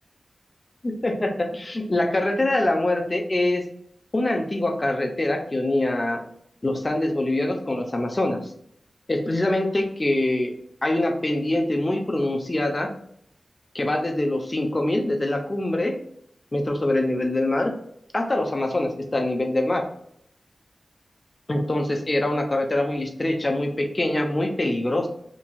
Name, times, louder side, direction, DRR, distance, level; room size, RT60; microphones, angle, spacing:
voice 1, 0.8-3.6 4.1-6.2 6.6-8.4 9.1-10.5 10.8-12.9 13.7-16.0 16.5-17.7 18.1-19.9 21.5-25.1, left 1 dB, 35° left, 3 dB, 0.7 m, -24 dB
3.0 x 2.9 x 2.3 m, 0.70 s
cardioid pair, 45°, 0 cm